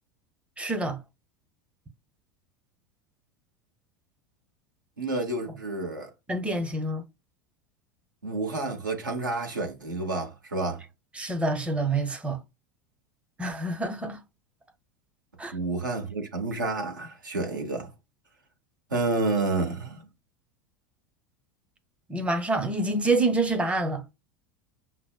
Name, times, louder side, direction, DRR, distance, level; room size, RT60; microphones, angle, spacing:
voice 1, 0.6-1.0 6.3-7.0 11.2-12.4 13.4-14.2 15.4-15.5 22.1-24.0, right 2 dB, 10° right, 0.6 m, -27 dB
voice 2, 5.0-6.1 8.2-10.8 15.5-17.9 18.9-20.1, right 3 dB, 80° right, 1.0 m, -29 dB
5.8 x 2.0 x 2.3 m
figure-of-eight pair, 80°, 11 cm